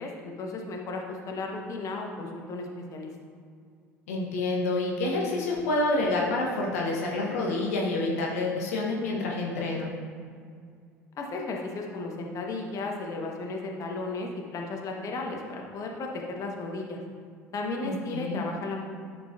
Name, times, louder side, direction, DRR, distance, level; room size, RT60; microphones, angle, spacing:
voice 1, 0.0-3.1 11.2-17.0 17.5-18.8, left 3 dB, 40° left, 1 dB, 1.2 m, -34 dB
voice 2, 4.1-9.9 17.8-18.4, left 2 dB, 70° left, -2 dB, 1.2 m, -28 dB
11.0 x 6.6 x 2.6 m, 2.2 s
figure-of-eight pair, 60°, 8 cm